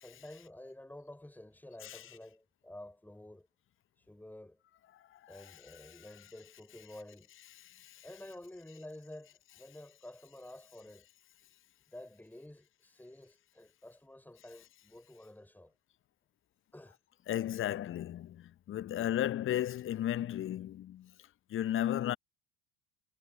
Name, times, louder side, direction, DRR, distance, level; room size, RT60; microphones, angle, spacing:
voice 1, 0.0-3.5 4.0-4.6 5.3-7.3 8.0-11.1 11.9-15.7 16.7-17.0, left 1 dB, 5° left, 6.0 m, -51 dB
voice 2, 4.9-5.6 7.7-8.0 17.3-21.1 21.5-22.2, left 12 dB, 30° left, 0.9 m, -35 dB
figure-of-eight pair, 60°, 39 cm